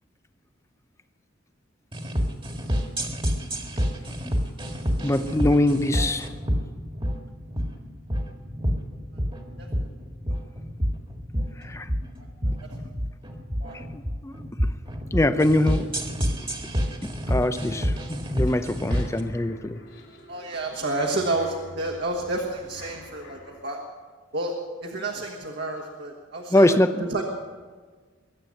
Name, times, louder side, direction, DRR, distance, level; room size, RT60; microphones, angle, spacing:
sound 1, 1.9-19.2, equal, 25° right, 1.8 m, -28 dB
voice 1, 5.0-6.3 11.6-11.9 13.9-14.5 15.1-16.0 17.0-19.8 26.5-27.0, left 1 dB, 15° left, 11 dB, 0.6 m, -23 dB
sound 2, 17.3-23.6, left 1 dB, 65° left, 4.1 m, -47 dB
voice 2, 20.3-23.8 24.3-24.6 24.8-27.2, right 2 dB, 60° right, 0 dB, 1.6 m, -30 dB
22.5 x 8.8 x 6.5 m, 1.5 s
head